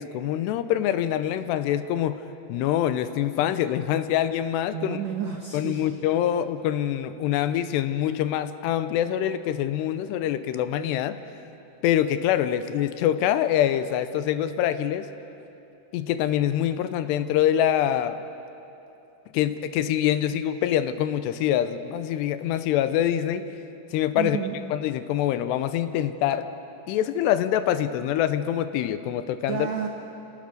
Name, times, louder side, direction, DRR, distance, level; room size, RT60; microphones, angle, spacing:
voice 1, 0.0-2.2 2.5-5.0 5.5-11.2 11.8-15.1 15.9-18.2 19.3-23.5 23.9-24.4 24.7-26.5 26.9-29.7, left 11 dB, 85° left, 11 dB, 2.8 m, -25 dB
voice 2, 4.7-5.9 24.2-24.6 29.5-29.9, right 7 dB, 75° right, 2 dB, 1.6 m, -31 dB
28.0 x 19.0 x 6.6 m, 2.8 s
omnidirectional pair, 5.0 m